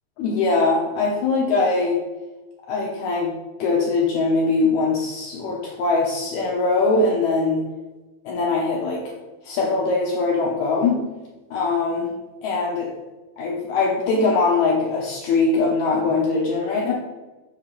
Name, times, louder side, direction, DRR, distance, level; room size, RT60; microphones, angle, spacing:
voice 1, 0.2-2.0 2.7-3.3 3.6-7.6 8.3-9.1 9.4-11.0 11.5-12.1 12.4-12.9 13.4-16.9, left 3 dB, 70° left, -2 dB, 2.0 m, -21 dB
6.7 x 3.5 x 6.1 m, 1.1 s
omnidirectional pair, 4.1 m